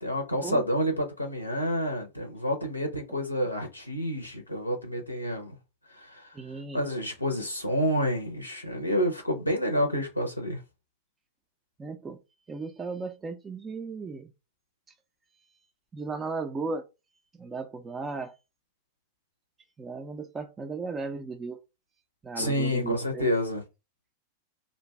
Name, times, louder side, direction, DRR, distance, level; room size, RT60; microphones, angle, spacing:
voice 1, 0.0-5.5 6.0-6.3 6.7-10.6 22.4-23.6, equal, 85° left, 0.5 m, -29 dB
voice 2, 6.3-6.8 11.8-12.2 12.5-14.3 15.9-16.9 17.3-18.4 19.8-21.6 22.2-23.3, right 4 dB, 15° right, 0.4 m, -36 dB
2.5 x 2.2 x 3.2 m
figure-of-eight pair, 90°, 0 cm